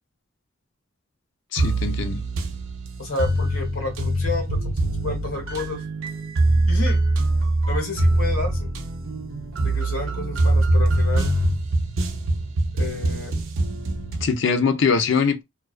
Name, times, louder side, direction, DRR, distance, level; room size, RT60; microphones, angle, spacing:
voice 1, 1.5-2.2 14.2-15.4, left 5 dB, 60° left, 0.4 m, -22 dB
sound 1, 1.6-14.3, right 2 dB, 65° right, 0.5 m, -23 dB
voice 2, 3.0-5.8 6.7-7.0 7.7-8.7 9.6-11.4 12.7-13.4, left 3 dB, 90° left, 1.1 m, -31 dB
2.3 x 2.3 x 2.3 m
head